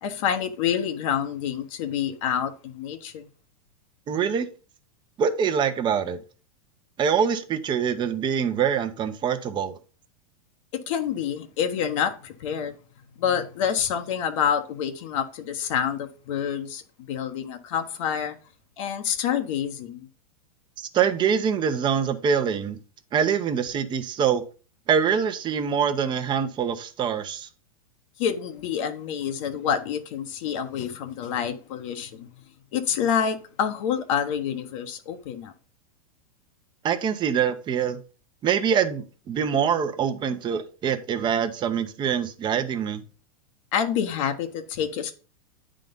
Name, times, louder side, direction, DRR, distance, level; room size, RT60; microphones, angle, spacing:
voice 1, 0.0-3.3 10.7-12.7 13.2-18.3 18.8-20.1 28.2-32.3 32.7-35.5 43.7-45.1, left 8 dB, 60° left, 1.1 m, -27 dB
voice 2, 4.1-4.5 5.2-6.2 7.0-9.7 20.8-22.8 23.1-24.4 24.9-27.5 36.8-38.0 38.4-43.0, right 7 dB, 25° right, 0.8 m, -24 dB
9.1 x 3.8 x 5.3 m
hypercardioid pair, 130°, 19 cm